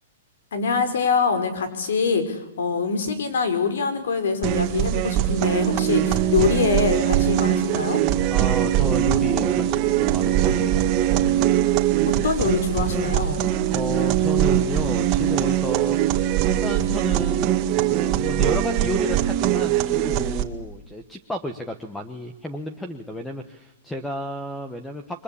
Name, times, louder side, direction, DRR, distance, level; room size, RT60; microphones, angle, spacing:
voice 1, 0.5-8.0 12.0-13.5, left 5 dB, 80° left, 10 dB, 5.4 m, -24 dB
sound 1, 4.4-20.4, right 12 dB, 25° right, 1.9 m, -22 dB
voice 2, 8.3-11.0 13.7-16.2 16.6-25.2, left 1 dB, 5° left, 8 dB, 1.2 m, -32 dB
28.0 x 23.0 x 8.6 m, 0.85 s
hypercardioid pair, 165°, 0 cm